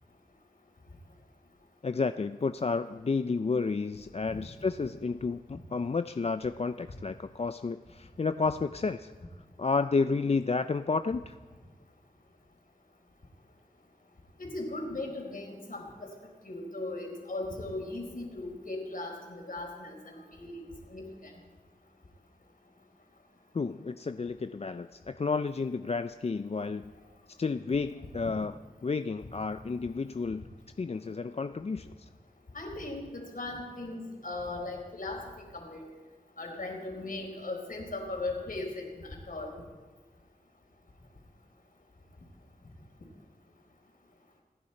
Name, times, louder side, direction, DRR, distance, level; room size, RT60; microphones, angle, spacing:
voice 1, 1.8-9.1 9.6-11.4 23.5-26.9 27.4-28.5 28.8-30.5 30.8-32.1, left 4 dB, 45° left, 10 dB, 0.5 m, -31 dB
voice 2, 14.4-16.1 16.4-21.3 28.0-28.1 32.5-35.2 35.5-35.9 36.4-39.6, left 2 dB, 65° left, 1 dB, 4.1 m, -38 dB
27.5 x 10.5 x 4.4 m, 1.5 s
wide cardioid pair, 55°, 15 cm